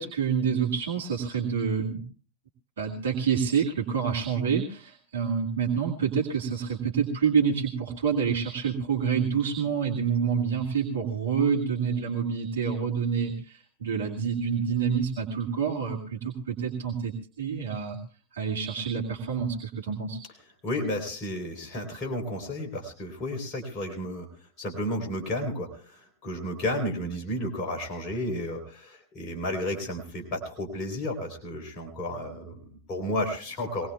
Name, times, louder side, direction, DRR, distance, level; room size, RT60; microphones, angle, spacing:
voice 1, 0.0-2.0 2.8-18.0 18.3-20.2, right 6 dB, 65° right, 0 dB, 2.2 m, -27 dB
voice 2, 20.6-33.9, left 1 dB, 35° left, 2 dB, 3.8 m, -32 dB
23.0 x 19.0 x 2.3 m, 0.39 s
figure-of-eight pair, 90°, 0 cm